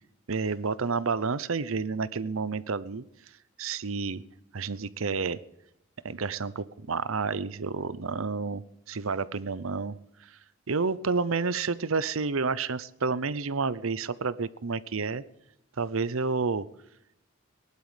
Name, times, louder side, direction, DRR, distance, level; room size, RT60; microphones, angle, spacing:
voice 1, 0.3-3.0 3.6-4.2 4.5-5.4 6.0-10.0 10.2-10.3 10.7-15.2 15.8-16.7, right 4 dB, 80° right, 17 dB, 0.8 m, -30 dB
18.5 x 11.5 x 5.1 m, 0.81 s
head